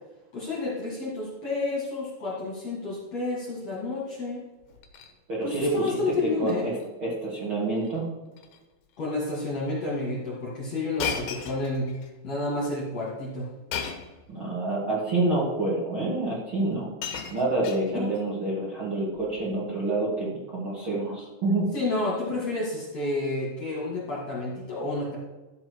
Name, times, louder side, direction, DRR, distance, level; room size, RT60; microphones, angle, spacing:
voice 1, 0.3-4.4 5.4-6.7 9.0-12.0 12.2-13.5 21.7-25.2, left 2 dB, 45° left, -5 dB, 2.9 m, -30 dB
Shatter, 4.6-5.1 5.5-5.9 6.3-6.5 6.8-6.9 7.8-8.0 8.3-8.6 9.3-9.4 11.0-12.1 13.7-14.2 15.2-15.3 16.3-16.4 16.7-18.2 19.2-19.4, left 7 dB, 65° left, 2.1 m, -36 dB
voice 2, 5.3-8.0 14.3-16.9 17.3-21.7, right 2 dB, 35° right, -8 dB, 2.6 m, -28 dB
13.0 x 7.5 x 4.7 m, 1.2 s
omnidirectional pair, 4.8 m